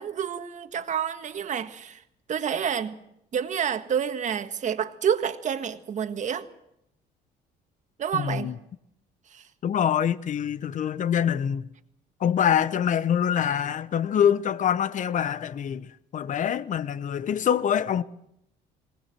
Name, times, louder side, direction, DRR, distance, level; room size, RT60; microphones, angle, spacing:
voice 1, 0.0-2.0 2.3-3.0 3.3-6.5 8.0-8.5 9.3-9.4, right 8 dB, 45° right, 1.7 m, -28 dB
voice 2, 8.1-8.5 9.6-11.6 12.2-18.0, left 9 dB, 50° left, 1.0 m, -25 dB
21.5 x 19.0 x 7.6 m
cardioid pair, 110°, 17 cm